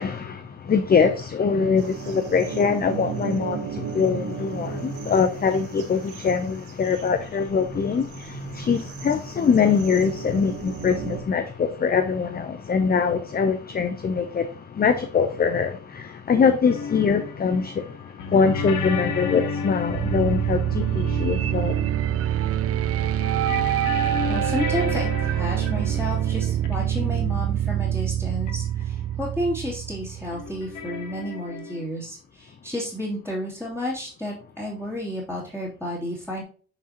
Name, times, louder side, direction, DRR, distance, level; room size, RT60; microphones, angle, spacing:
voice 1, 0.0-21.8, left 5 dB, 30° left, 0.7 m, -23 dB
sound 1, 1.8-11.2, right 7 dB, 90° right, 1.9 m, -35 dB
sound 2, 16.6-22.7 23.0-27.1 28.5-28.6 28.8-28.9 30.3-31.8, left 5 dB, 85° left, 1.2 m, -33 dB
sound 3, 19.9-30.8, right 11 dB, 50° right, 0.4 m, -25 dB
voice 2, 24.2-36.4, equal, 5° left, 2.8 m, -31 dB
8.7 x 4.8 x 2.9 m
cardioid pair, 90°, 30 cm